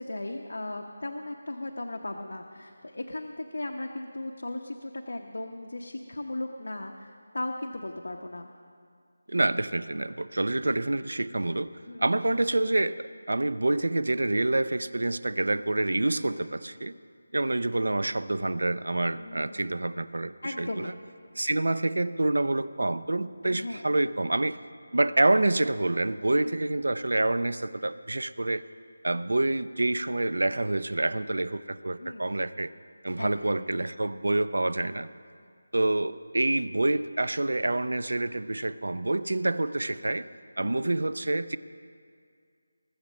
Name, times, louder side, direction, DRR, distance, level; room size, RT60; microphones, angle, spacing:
voice 1, 0.0-8.5 11.9-12.1 16.2-16.5 19.2-19.7 20.4-21.0 23.4-23.8 26.3-26.6 32.0-32.4 33.2-33.6 40.6-40.9, left 2 dB, 80° left, 2 dB, 0.9 m, -37 dB
voice 2, 9.3-11.7 12.0-16.9 17.3-20.9 21.4-24.6 24.9-28.6 29.0-32.7 33.0-35.1 35.7-40.3 40.6-41.6, right 2 dB, 85° right, 15 dB, 0.5 m, -27 dB
20.0 x 7.4 x 6.3 m, 2.2 s
figure-of-eight pair, 175°, 0 cm